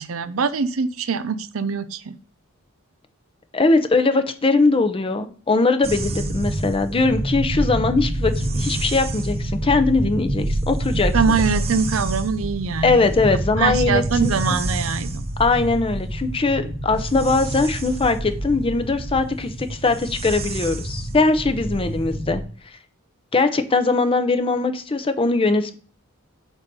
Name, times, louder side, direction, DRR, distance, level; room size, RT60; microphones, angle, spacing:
voice 1, 0.0-2.2 11.1-13.1 13.6-15.3, right 5 dB, 70° right, 13 dB, 0.5 m, -23 dB
voice 2, 3.5-11.1 12.8-14.6 15.4-22.4 23.3-25.7, left 3 dB, 25° left, 9 dB, 0.6 m, -21 dB
sound 1, 5.8-22.4, right 1 dB, 30° right, 0.7 m, -27 dB
7.9 x 2.7 x 5.4 m, 0.42 s
head